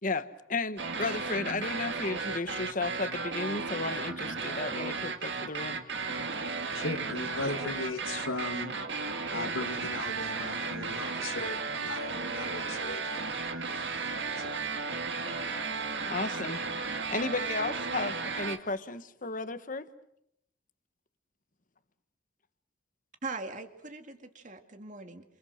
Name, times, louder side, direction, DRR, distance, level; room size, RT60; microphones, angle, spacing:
voice 1, 0.0-5.8 16.1-16.6 17.1-19.9, left 3 dB, 40° left, 11 dB, 1.3 m, -34 dB
sound 1, 0.8-18.6, right 4 dB, 60° right, 2.1 m, -34 dB
voice 2, 6.7-8.7 9.3-13.2 13.7-14.6, left 2 dB, 90° left, 4 dB, 2.2 m, -37 dB
voice 3, 23.2-25.2, right 3 dB, 40° right, 6 dB, 2.3 m, -40 dB
28.5 x 27.5 x 6.5 m, 0.75 s
head